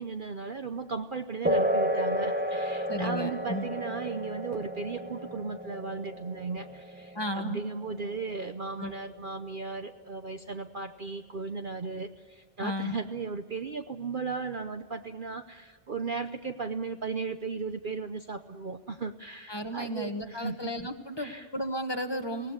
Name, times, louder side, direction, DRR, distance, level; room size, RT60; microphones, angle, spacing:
voice 1, 0.0-20.6 21.2-21.5, right 4 dB, 45° right, 8 dB, 0.9 m, -36 dB
sound 1, 1.4-9.5, equal, 10° right, 1.0 m, -32 dB
voice 2, 2.9-3.6 7.1-7.6 8.8-8.9 12.6-13.0 19.5-22.5, equal, 20° left, 5 dB, 1.5 m, -34 dB
24.0 x 18.0 x 9.8 m, 1.5 s
omnidirectional pair, 1.4 m